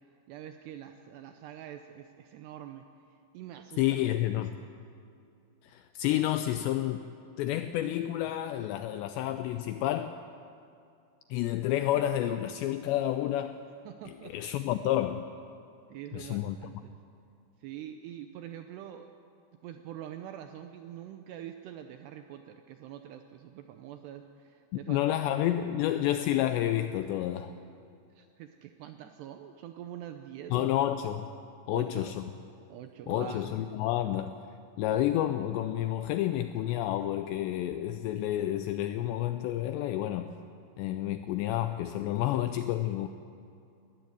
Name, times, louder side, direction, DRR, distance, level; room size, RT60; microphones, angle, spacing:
voice 1, 0.3-2.8 3.3-4.4 13.9-14.3 15.9-17.0 17.6-19.1 19.6-25.2 28.2-30.7 31.7-32.1 32.7-33.6, right 11 dB, 80° right, 7 dB, 2.4 m, -45 dB
voice 2, 3.8-4.6 5.6-7.0 7.4-10.1 11.3-13.6 14.1-15.3 16.1-16.6 24.7-27.6 30.5-31.3 31.7-32.2 33.1-34.3 34.8-40.3 40.8-43.1, left 13 dB, 85° left, 9 dB, 2.5 m, -30 dB
20.0 x 13.5 x 9.5 m, 2.5 s
omnidirectional pair, 5.6 m